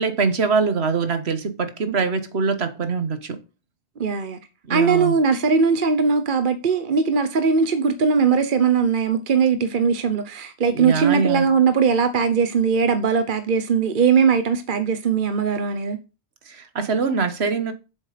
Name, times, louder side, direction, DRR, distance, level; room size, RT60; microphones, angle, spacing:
voice 1, 0.0-3.4 4.7-5.2 10.7-11.5 16.5-17.7, right 5 dB, 70° right, 1.4 m, -23 dB
voice 2, 4.0-4.4 4.7-16.0, right 5 dB, 50° right, 1.0 m, -20 dB
7.8 x 7.1 x 5.1 m
omnidirectional pair, 1.1 m